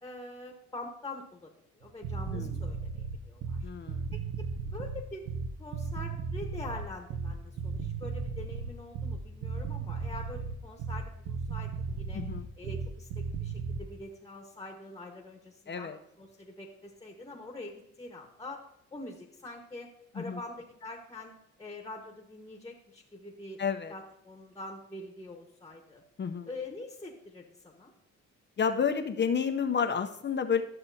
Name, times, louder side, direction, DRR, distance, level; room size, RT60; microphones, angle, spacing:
voice 1, 0.0-1.5 1.8-3.6 4.1-5.3 5.6-12.2 12.6-15.9 16.2-18.6 18.9-23.6 23.9-26.0 26.5-27.9, left 2 dB, 10° left, 2 dB, 1.3 m, -45 dB
sound 1, 1.8-13.9, right 5 dB, 80° right, 0.8 m, -35 dB
voice 2, 3.6-4.1 12.1-12.5 15.7-16.0 20.2-20.4 23.6-23.9 26.2-26.5 28.6-30.6, left 6 dB, 35° left, 7 dB, 0.7 m, -30 dB
12.5 x 6.7 x 2.8 m, 0.74 s
cardioid pair, 90°, 30 cm